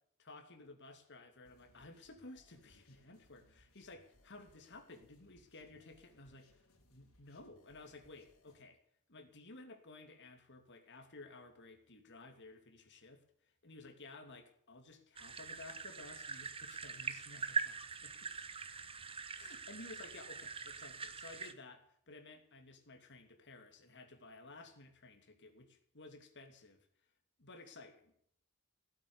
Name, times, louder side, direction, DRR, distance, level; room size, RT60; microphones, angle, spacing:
voice 1, 0.2-6.6 6.9-8.8 9.1-13.2 13.6-18.3 19.3-26.9 27.4-28.1, left 2 dB, 55° left, 5 dB, 2.7 m, -55 dB
sound 1, 1.4-8.5, left 1 dB, 70° left, 4.6 m, -69 dB
sound 2, 15.2-21.5, right 5 dB, 25° right, 1.1 m, -43 dB
16.5 x 8.6 x 9.7 m, 0.65 s
head